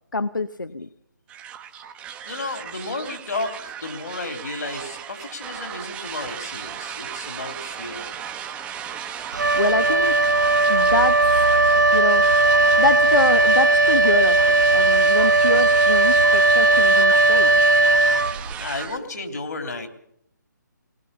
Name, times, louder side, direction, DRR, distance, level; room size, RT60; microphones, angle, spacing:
voice 1, 0.1-0.9 9.6-10.2 10.7-11.6 11.9-12.3 12.5-17.6, left 3 dB, 85° left, 12 dB, 0.8 m, -25 dB
sound 1, 1.3-19.0, right 9 dB, 10° right, 0.9 m, -35 dB
voice 2, 2.2-8.2 18.6-19.9, left 3 dB, 60° left, 5 dB, 3.3 m, -32 dB
Wind instrument woodwind instrument, 9.3-18.8, right 3 dB, 65° right, 0.9 m, -17 dB
20.5 x 20.0 x 7.0 m, 0.74 s
figure-of-eight pair, 145°, 10 cm